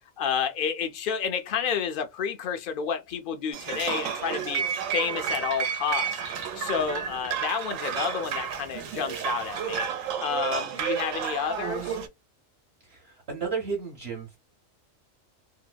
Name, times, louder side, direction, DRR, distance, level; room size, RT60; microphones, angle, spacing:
voice 1, 0.2-4.6 4.9-6.2 6.6-9.9 10.2-12.0, left 7 dB, 60° left, 0.6 m, -30 dB
sound 1, 3.5-12.1, right 8 dB, 85° right, 1.0 m, -31 dB
voice 2, 12.9-14.4, right 5 dB, 55° right, 1.0 m, -33 dB
2.7 x 2.0 x 2.2 m
omnidirectional pair, 1.4 m